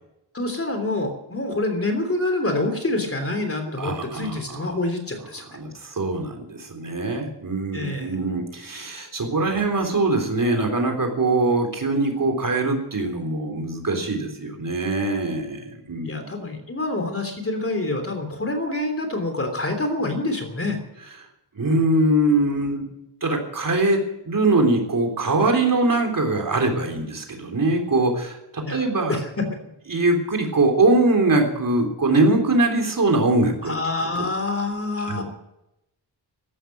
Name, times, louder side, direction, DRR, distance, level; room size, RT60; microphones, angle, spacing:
voice 1, 0.3-5.5 7.7-8.2 16.0-20.8 28.6-29.6 33.6-35.2, left 2 dB, 35° left, 6 dB, 3.2 m, -26 dB
voice 2, 3.8-4.8 5.5-16.3 21.6-22.9 23.2-29.2 29.9-33.8 34.2-34.3 35.1-35.2, right 2 dB, 55° right, 3 dB, 3.6 m, -22 dB
14.5 x 12.0 x 7.7 m, 0.86 s
wide cardioid pair, 140°, 40 cm